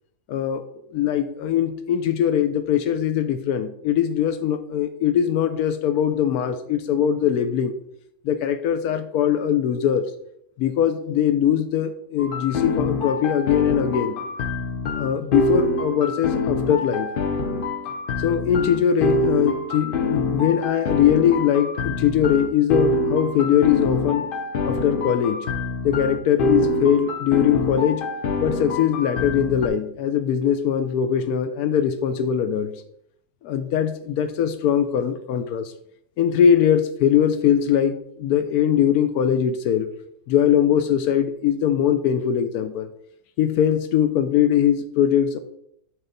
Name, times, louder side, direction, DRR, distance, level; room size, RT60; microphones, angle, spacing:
voice 1, 0.3-0.6 0.9-7.7 8.2-10.1 10.6-14.2 15.0-17.1 18.2-24.2 24.6-25.4 25.8-28.0 28.4-32.7 33.4-35.7 36.2-39.9 40.3-42.9 43.4-45.4, left 9 dB, 90° left, 9 dB, 1.1 m, -21 dB
sound 1, 12.2-29.7, left 2 dB, 55° left, 0.6 m, -25 dB
7.7 x 4.5 x 4.0 m, 0.71 s
omnidirectional pair, 1.6 m